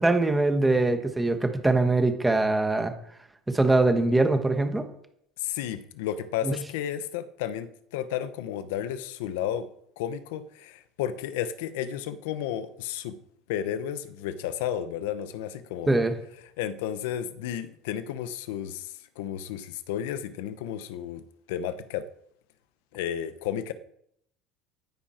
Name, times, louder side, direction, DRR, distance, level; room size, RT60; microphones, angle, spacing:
voice 1, 0.0-2.9 3.5-4.8 6.4-6.6 15.9-16.1, right 2 dB, 5° right, 7 dB, 1.3 m, -22 dB
voice 2, 5.4-9.7 10.0-13.2 13.5-16.0 16.6-22.1 22.9-23.7, left 10 dB, 90° left, 12 dB, 1.0 m, -32 dB
15.0 x 10.0 x 4.5 m, 0.73 s
cardioid pair, 165°, 0 cm